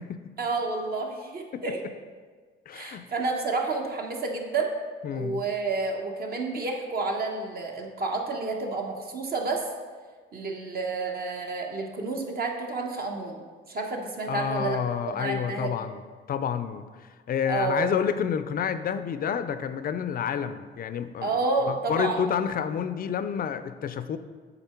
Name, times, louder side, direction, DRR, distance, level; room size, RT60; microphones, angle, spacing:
voice 1, 0.4-1.8 2.7-4.7 5.1-9.6 10.3-14.8 15.1-15.7 17.5-17.9 21.2-22.2, right 3 dB, 50° right, 1 dB, 1.1 m, -30 dB
voice 2, 2.7-3.0 5.0-5.4 14.3-16.0 16.3-21.3 21.7-24.2, left 8 dB, 45° left, 11 dB, 0.4 m, -29 dB
7.9 x 3.9 x 4.4 m, 1.5 s
cardioid pair, 90°, 20 cm